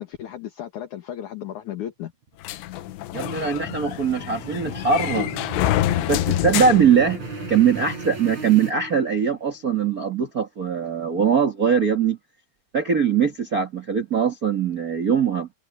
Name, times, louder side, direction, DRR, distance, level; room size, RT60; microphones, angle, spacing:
voice 1, 0.0-2.1, left 11 dB, 55° left, 2.6 m, -34 dB
sound 1, 2.3-9.5, right 3 dB, 45° right, 6.2 m, -36 dB
sound 2, 2.4-7.7, left 14 dB, 90° left, 3.2 m, -27 dB
voice 2, 3.1-5.3 5.6-5.8 6.1-12.2 12.7-15.5, right 7 dB, 90° right, 0.8 m, -21 dB
omnidirectional pair, 4.8 m